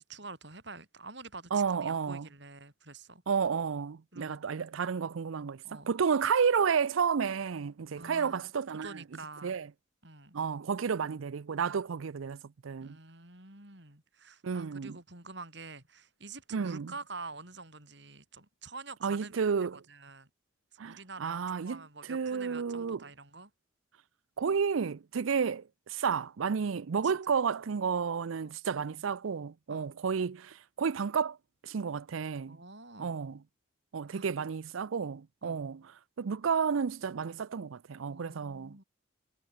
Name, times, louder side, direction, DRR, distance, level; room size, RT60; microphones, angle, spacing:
voice 1, 0.0-3.2 4.1-4.4 5.6-5.9 8.0-8.4 8.8-9.6 10.0-10.4 12.8-19.4 19.7-20.3 20.7-23.5 27.3-27.4 28.4-28.5 29.7-29.9 32.5-33.2 34.1-34.3 35.4-35.6 38.1-38.8, right 3 dB, 60° right, 6.6 m, -47 dB
voice 2, 1.5-2.3 3.3-9.0 9.4-9.7 10.3-13.0 14.4-15.0 16.5-16.9 19.0-19.8 20.8-21.8 22.1-23.0 24.4-31.4 31.6-32.6 33.0-33.4 33.9-35.8 36.2-38.8, right 6 dB, 80° right, 0.5 m, -31 dB
head